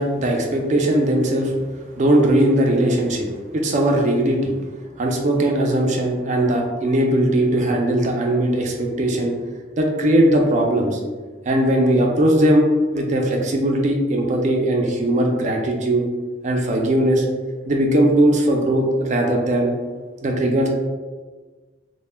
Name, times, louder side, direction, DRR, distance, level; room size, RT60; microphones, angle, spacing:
voice 1, 0.0-1.5 2.0-3.3 3.5-4.5 5.0-9.3 9.8-11.0 11.5-12.7 12.9-16.0 16.4-17.2 17.7-19.7 20.2-20.7, right 1 dB, 40° right, 1 dB, 0.4 m, -19 dB
2.1 x 2.1 x 3.2 m, 1.4 s
head